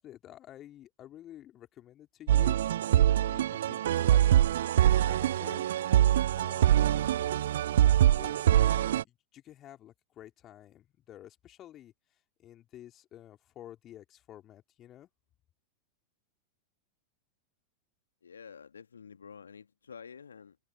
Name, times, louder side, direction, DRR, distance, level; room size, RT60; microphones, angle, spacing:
voice 1, 0.0-2.6 2.9-4.4 4.8-5.7 6.4-7.2 8.2-8.6 8.9-11.9 12.4-15.1, left 12 dB, 30° left, 3.6 m, -50 dB
sound 1, 2.3-9.0, right 12 dB, 60° right, 0.3 m, -24 dB
voice 2, 18.2-20.6, left 6 dB, 70° left, 1.6 m, -49 dB
figure-of-eight pair, 90°, 0 cm